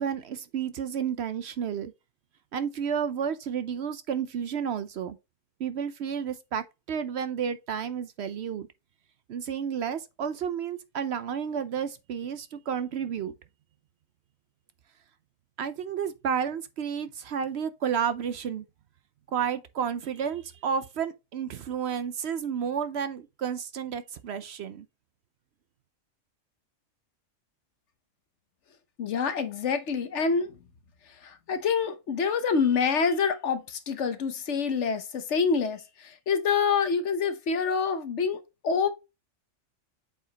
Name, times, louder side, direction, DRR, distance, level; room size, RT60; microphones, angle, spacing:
voice 1, 0.0-1.9 2.5-5.2 5.6-8.7 9.3-13.3 15.6-18.6 19.3-24.9, right 7 dB, 65° right, 0.8 m, -31 dB
voice 2, 29.0-30.5 31.2-38.9, left 5 dB, 65° left, 1.2 m, -26 dB
8.0 x 4.9 x 2.8 m
omnidirectional pair, 1.3 m